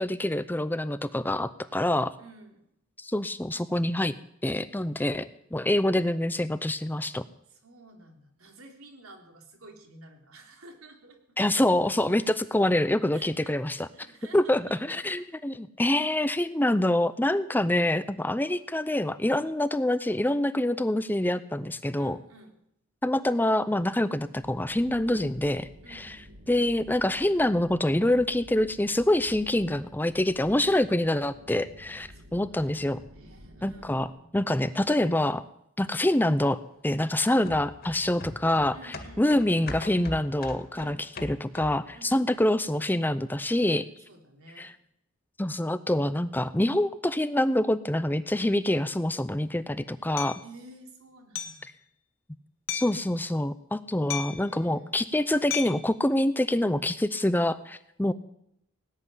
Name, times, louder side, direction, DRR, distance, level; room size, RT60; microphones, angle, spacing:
voice 1, 0.0-2.1 3.0-4.1 4.4-7.2 11.4-13.9 14.3-22.2 23.0-26.2 26.5-33.0 33.6-34.1 34.3-35.4 35.8-38.8 39.2-41.0 41.2-43.8 44.6-44.7 45.4-50.4 52.7-58.1, left 1 dB, 10° left, 14 dB, 0.5 m, -26 dB
voice 2, 2.2-2.6 5.0-5.1 7.5-11.4 13.1-13.6 13.9-15.2 15.8-16.1 22.0-22.5 25.8-26.2 32.1-34.4 38.7-39.3 40.7-41.0 41.9-42.2 43.6-44.7 50.4-51.7 53.9-55.1, right 2 dB, 85° right, 3 dB, 3.6 m, -52 dB
sound 1, 24.4-34.1, equal, 65° right, 2.2 m, -51 dB
sound 2, 37.5-41.9 42.3-42.4, left 2 dB, 45° left, 2.0 m, -41 dB
Hammer, 50.2-50.4 51.4-51.7 52.7-53.0 54.1-54.5 55.5-55.9, left 9 dB, 60° left, 1.6 m, -34 dB
18.5 x 7.6 x 9.9 m, 0.77 s
head